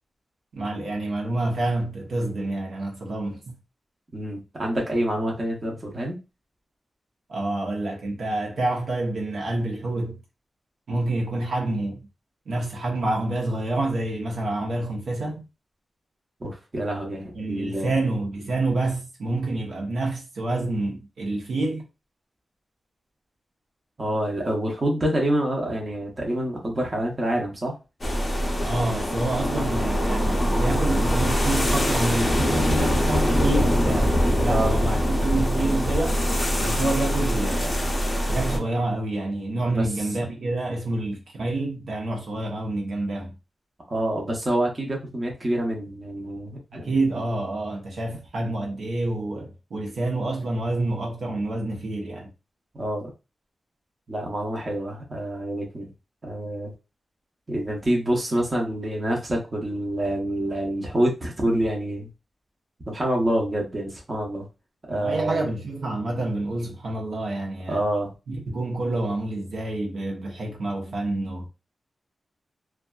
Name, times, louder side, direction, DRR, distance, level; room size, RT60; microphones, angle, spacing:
voice 1, 0.5-3.5 7.3-10.2 10.9-12.1 12.5-15.4 17.3-21.8 28.6-36.2 36.6-37.9 38.3-43.3 46.7-52.3 64.9-67.8 68.3-71.5, right 2 dB, 85° right, 0.8 m, -28 dB
voice 2, 4.1-6.2 16.4-17.9 24.0-27.7 34.4-34.8 39.7-39.9 43.9-46.9 52.7-53.1 54.1-55.9 56.2-56.7 57.5-62.1 62.9-64.5 64.9-65.4 67.7-68.1, right 1 dB, 25° right, 0.6 m, -27 dB
sound 1, 28.0-38.6, equal, 25° left, 0.5 m, -23 dB
2.6 x 2.3 x 2.2 m
wide cardioid pair, 175°, 0 cm